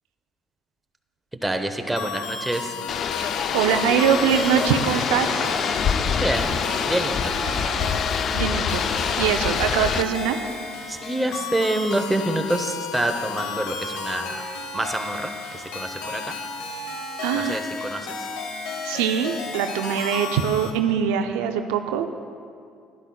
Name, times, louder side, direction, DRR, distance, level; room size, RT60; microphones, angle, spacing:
voice 1, 1.4-2.7 6.2-6.6 6.8-7.3 10.9-14.4 14.7-16.3 17.3-18.1, right 1 dB, 10° right, 5 dB, 0.8 m, -27 dB
sound 1, 2.0-20.7, left 4 dB, 80° left, 0.9 m, -33 dB
sound 2, 2.9-10.0, left 7 dB, 55° left, 0.4 m, -25 dB
voice 2, 3.2-5.4 8.3-8.8 9.2-10.4 17.2-17.6 18.8-22.1, right 8 dB, 85° right, 6 dB, 0.4 m, -23 dB
11.5 x 11.0 x 2.3 m, 2.3 s
supercardioid pair, 65°, 0 cm